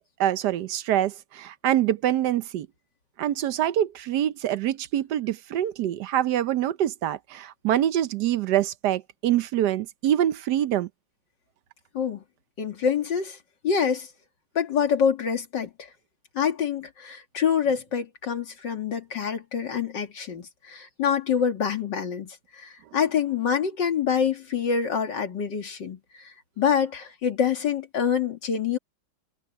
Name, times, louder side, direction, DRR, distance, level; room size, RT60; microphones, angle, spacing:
voice 1, 0.2-2.7 3.2-10.9, right 11 dB, 70° right, 1.2 m, -25 dB
voice 2, 12.6-13.4 13.6-14.1 14.5-15.7 16.3-28.8, left 7 dB, 80° left, 2.8 m, -26 dB
omnidirectional pair, 1.9 m